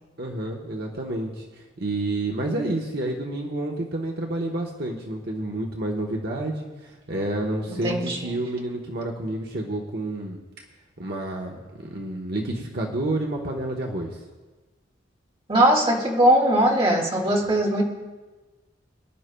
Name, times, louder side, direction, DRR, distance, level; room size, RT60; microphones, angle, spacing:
voice 1, 0.2-1.4 1.8-10.4 11.0-14.2, right 2 dB, 60° right, 0 dB, 1.1 m, -29 dB
voice 2, 7.8-8.2 15.5-17.8, right 1 dB, 30° right, -1 dB, 1.9 m, -20 dB
24.0 x 11.0 x 2.3 m, 1.2 s
head